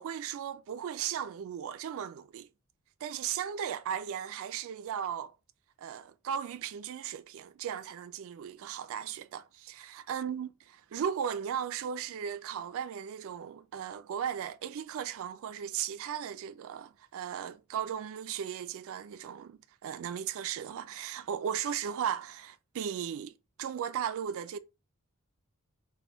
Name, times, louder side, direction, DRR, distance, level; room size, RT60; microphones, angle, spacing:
voice 1, 0.0-2.5 3.0-5.3 5.8-24.6, right 8 dB, 65° right, 0.3 m, -36 dB
4.1 x 2.2 x 4.4 m
head